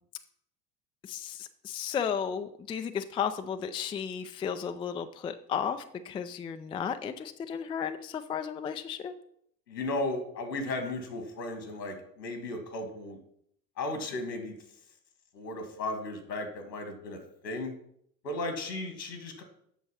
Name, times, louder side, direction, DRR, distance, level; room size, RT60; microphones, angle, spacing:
voice 1, 1.1-9.1, left 7 dB, 10° left, 8 dB, 0.4 m, -34 dB
voice 2, 9.7-13.2 13.8-14.5 15.3-17.7 18.2-19.4, left 2 dB, 75° left, 7 dB, 2.1 m, -35 dB
8.3 x 6.3 x 5.8 m, 0.68 s
figure-of-eight pair, 70°, 50 cm